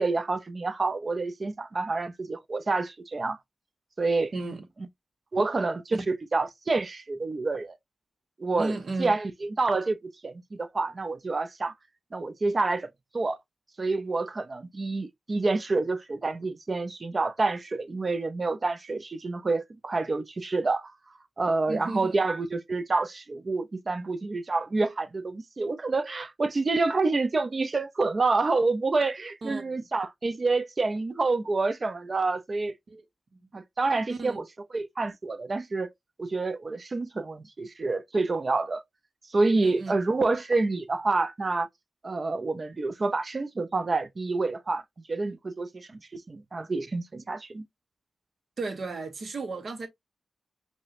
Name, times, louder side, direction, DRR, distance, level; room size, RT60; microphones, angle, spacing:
voice 1, 0.0-3.4 4.0-4.3 5.3-7.8 8.4-8.7 9.0-11.7 12.1-12.9 13.1-13.4 13.8-20.9 21.4-32.7 33.5-34.5 34.7-35.9 36.2-38.8 39.3-41.7 42.0-44.8 45.1-47.6, right 3 dB, 45° right, 0.6 m, -28 dB
voice 2, 4.3-4.6 5.9-6.0 8.6-9.1 21.7-22.2 29.4-29.8 32.9-33.0 33.4-33.5 34.1-34.4 39.5-40.0 48.6-49.9, right 3 dB, 65° right, 1.0 m, -34 dB
5.4 x 2.2 x 2.6 m
cardioid pair, 50°, 0 cm